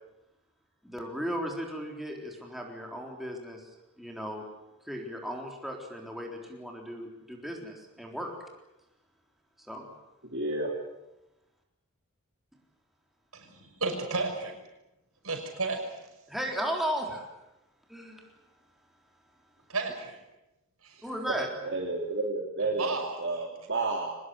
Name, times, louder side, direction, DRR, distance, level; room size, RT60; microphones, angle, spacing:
voice 1, 0.8-3.6 4.0-4.4 4.9-8.3 9.7-9.9 16.3-17.3 17.9-18.3 21.0-21.5, equal, ahead, 0 dB, 3.9 m, -35 dB
voice 2, 10.2-10.7 21.3-22.9 23.2-24.1, right 3 dB, 55° right, -1 dB, 3.1 m, -31 dB
voice 3, 13.3-14.5 15.2-16.0 19.7-20.2 20.8-21.0 22.8-23.2, right 3 dB, 75° right, 4 dB, 6.0 m, -33 dB
24.5 x 19.5 x 9.5 m, 0.95 s
head